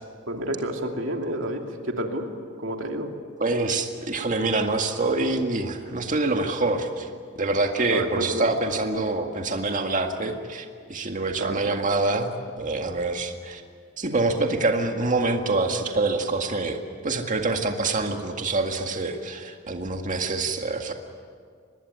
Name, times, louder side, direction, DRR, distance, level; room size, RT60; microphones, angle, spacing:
voice 1, 0.3-2.3 2.6-3.1 7.9-8.5 11.4-11.7, right 1 dB, 65° right, 3 dB, 2.8 m, -29 dB
voice 2, 3.4-7.1 7.4-12.3 12.6-13.6 14.0-20.9, right 2 dB, 40° right, 4 dB, 2.0 m, -26 dB
24.5 x 20.5 x 9.6 m, 2.1 s
head